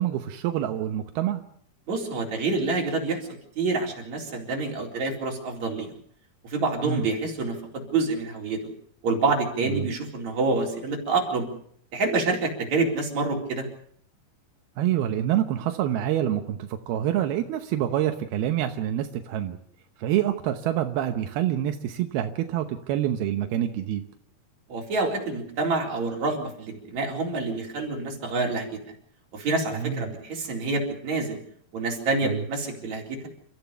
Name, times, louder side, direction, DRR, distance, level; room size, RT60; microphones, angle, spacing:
voice 1, 0.0-1.4 6.8-7.0 9.8-9.9 14.8-19.6 20.0-24.0 29.8-30.0 32.2-32.4, right 11 dB, 85° right, 6 dB, 3.0 m, -26 dB
voice 2, 1.9-3.2 3.6-5.9 6.4-8.6 9.0-11.5 11.9-13.7 24.7-28.8 29.3-31.4 31.7-33.3, right 3 dB, 50° right, 0 dB, 5.3 m, -27 dB
30.0 x 14.5 x 6.9 m, 0.64 s
omnidirectional pair, 4.4 m